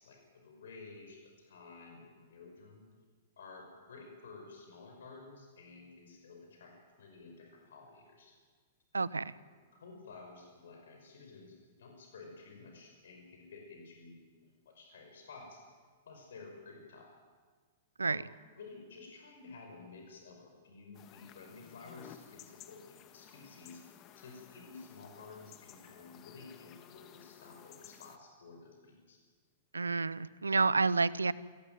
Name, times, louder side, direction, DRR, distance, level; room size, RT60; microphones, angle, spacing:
voice 1, 0.0-2.8 3.4-8.3 9.3-15.6 16.1-17.1 18.0-18.2 18.6-23.8 24.1-29.2, left 4 dB, 70° left, 2 dB, 5.5 m, -52 dB
voice 2, 8.9-9.3 18.0-18.2 29.7-31.3, right 4 dB, 85° right, 20 dB, 0.8 m, -29 dB
sound 1, 20.9-28.2, left 10 dB, 35° left, 1.9 m, -56 dB
28.0 x 16.5 x 9.2 m, 1.5 s
figure-of-eight pair, 105°, 0 cm